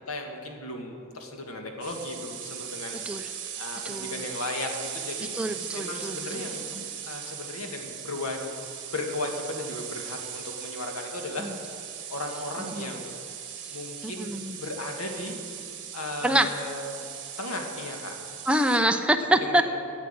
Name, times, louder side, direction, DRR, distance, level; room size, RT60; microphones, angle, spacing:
voice 1, 0.1-3.0 3.6-5.3 5.7-6.7 7.0-8.4 8.9-11.7 12.1-13.1 13.7-15.4 15.9-17.0 17.4-18.1 19.4-19.7, left 2 dB, 75° left, 3 dB, 1.7 m, -35 dB
sound 1, 1.8-18.8, right 8 dB, 55° right, 1.5 m, -39 dB
voice 2, 2.9-3.3 3.8-4.2 5.3-6.5 6.7-6.8 11.4-11.6 12.6-12.9 13.6-13.8 14.0-14.6 16.2-16.5 18.5-19.6, right 1 dB, 5° right, 7 dB, 0.6 m, -26 dB
12.0 x 7.2 x 8.7 m, 2.6 s
head